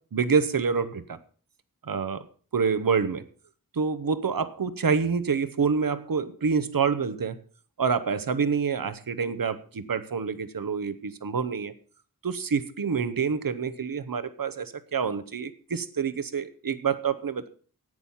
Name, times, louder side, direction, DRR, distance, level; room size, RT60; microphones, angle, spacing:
voice 1, 0.1-1.2 1.8-2.2 2.5-3.2 3.7-7.4 7.8-11.7 12.2-17.5, right 5 dB, 70° right, 13 dB, 1.0 m, -27 dB
11.0 x 8.9 x 5.6 m, 0.42 s
wide cardioid pair, 60°, 36 cm